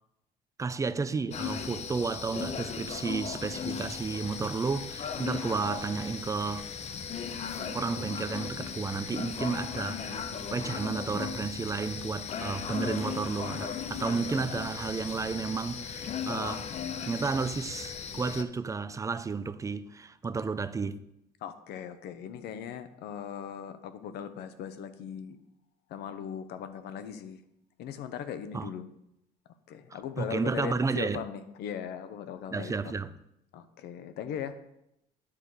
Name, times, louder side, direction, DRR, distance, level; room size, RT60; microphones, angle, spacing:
voice 1, 0.6-6.7 7.7-16.7 17.0-21.0 28.5-28.7 30.2-31.2 32.5-33.1, right 4 dB, 20° right, 0.4 m, -32 dB
sound 1, 1.3-18.4, left 7 dB, 40° left, 0.7 m, -37 dB
voice 2, 21.4-25.4 25.9-27.4 27.8-28.9 29.7-32.7 33.5-34.6, left 8 dB, 75° left, 0.8 m, -39 dB
10.0 x 3.9 x 6.3 m
cardioid pair, 110°, 17 cm